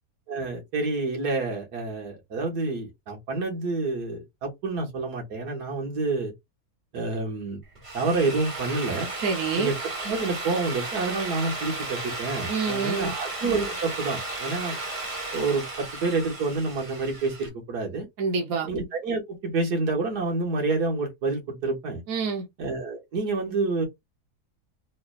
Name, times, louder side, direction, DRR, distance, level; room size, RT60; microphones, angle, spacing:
voice 1, 0.3-6.3 6.9-7.6 7.9-9.1 9.6-9.7 10.0-14.7 15.3-18.1 18.7-22.0 22.6-23.9, right 3 dB, 90° right, 2.0 m, -28 dB
Drill, 7.7-17.5, right 3 dB, 25° right, 0.8 m, -34 dB
voice 2, 9.2-9.7 12.5-13.1 18.2-18.7 22.1-22.5, right 5 dB, 65° right, 1.4 m, -27 dB
3.7 x 3.3 x 2.4 m
omnidirectional pair, 1.7 m